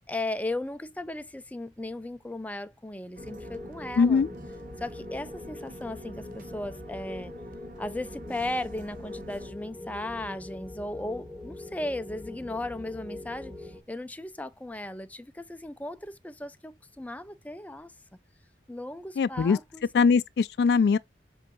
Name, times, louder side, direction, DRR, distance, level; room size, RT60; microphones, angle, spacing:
voice 1, 0.1-4.3 4.8-7.3 7.8-17.9 18.7-19.9, left 1 dB, 10° left, 0.5 m, -36 dB
sound 1, 3.1-9.5, right 1 dB, 50° right, 0.8 m, -48 dB
sound 2, 3.2-13.8, left 2 dB, 15° right, 2.0 m, -42 dB
voice 2, 4.0-4.3 19.2-19.6 19.9-21.0, left 5 dB, 65° left, 0.3 m, -21 dB
7.8 x 2.7 x 5.2 m
head